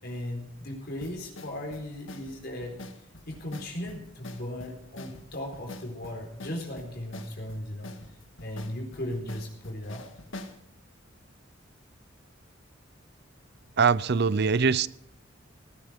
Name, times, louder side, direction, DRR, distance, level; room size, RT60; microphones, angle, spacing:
voice 1, 0.0-2.8 3.3-7.9 8.4-10.0, left 1 dB, 55° left, 4.2 m, -37 dB
sound 1, 1.0-10.6, left 1 dB, 80° left, 1.9 m, -45 dB
voice 2, 13.8-14.9, right 5 dB, 60° right, 0.6 m, -22 dB
19.0 x 13.0 x 5.2 m
head